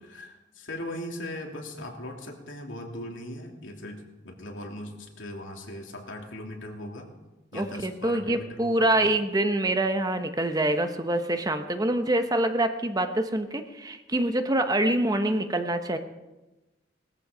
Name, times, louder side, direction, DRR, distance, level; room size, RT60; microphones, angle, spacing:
voice 1, 0.0-7.1 7.5-9.1, left 1 dB, 85° left, 1 dB, 3.0 m, -39 dB
voice 2, 7.5-16.0, right 1 dB, 20° right, 7 dB, 1.0 m, -25 dB
19.5 x 14.0 x 5.1 m, 1.0 s
head